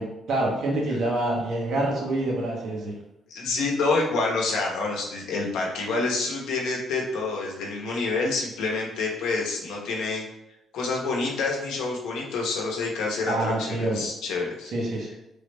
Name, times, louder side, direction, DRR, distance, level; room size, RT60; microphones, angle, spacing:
voice 1, 0.0-2.9 13.3-14.0 14.7-15.1, right 2 dB, 70° right, -2 dB, 1.0 m, -26 dB
voice 2, 3.3-10.2 10.7-14.7, left 3 dB, 85° left, -1 dB, 0.7 m, -27 dB
3.3 x 2.1 x 3.3 m, 0.86 s
cardioid pair, 90°, 0 cm